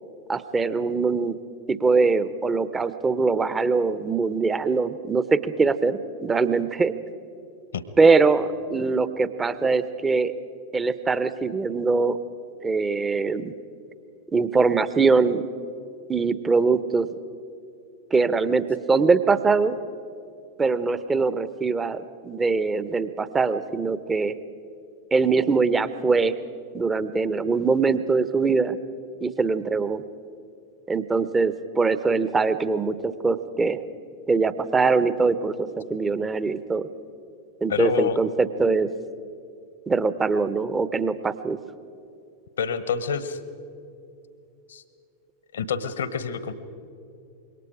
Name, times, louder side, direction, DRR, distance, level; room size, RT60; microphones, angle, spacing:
voice 1, 0.3-1.4 1.7-6.9 8.0-10.3 10.7-12.2 12.6-13.5 14.3-15.5 16.1-17.1 18.1-19.8 20.6-24.4 25.1-26.3 26.7-28.8 29.2-30.0 30.9-33.8 34.3-36.9 37.6-38.9 39.9-41.6, right 4 dB, 15° right, 14 dB, 0.9 m, -22 dB
voice 2, 37.7-38.2 42.6-43.4 44.7-44.8 45.5-46.5, left 6 dB, 65° left, 14 dB, 1.1 m, -27 dB
26.0 x 22.5 x 5.0 m, 2.6 s
figure-of-eight pair, 90°, 0 cm